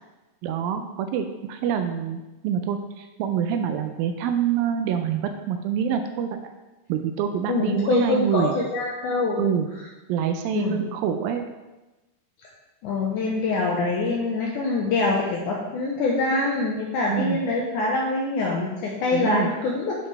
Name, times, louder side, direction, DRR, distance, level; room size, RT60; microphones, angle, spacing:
voice 1, 0.4-6.4 6.9-8.6 9.4-9.7 10.1-11.5 17.1-17.4 19.1-19.5, right 8 dB, 80° right, 7 dB, 2.1 m, -26 dB
voice 2, 7.5-9.4 10.5-10.8 12.8-20.0, left 3 dB, 85° left, -2 dB, 1.8 m, -24 dB
9.4 x 5.3 x 3.3 m, 1.1 s
omnidirectional pair, 4.5 m